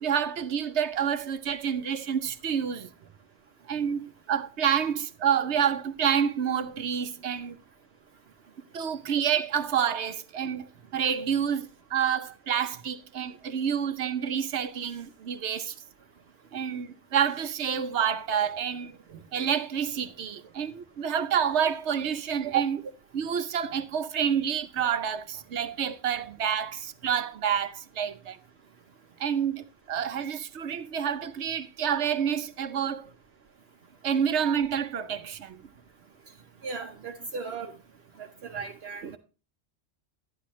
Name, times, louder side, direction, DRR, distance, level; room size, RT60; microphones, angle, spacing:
voice 1, 0.0-2.9 3.7-7.6 8.7-10.7 10.9-15.7 16.5-22.8 23.1-28.4 29.2-33.1 34.0-35.6 39.0-39.2, right 8 dB, 90° right, 1.1 m, -28 dB
voice 2, 36.6-37.7 38.2-39.2, right 4 dB, 65° right, 1.1 m, -37 dB
11.0 x 10.0 x 3.1 m
omnidirectional pair, 1.1 m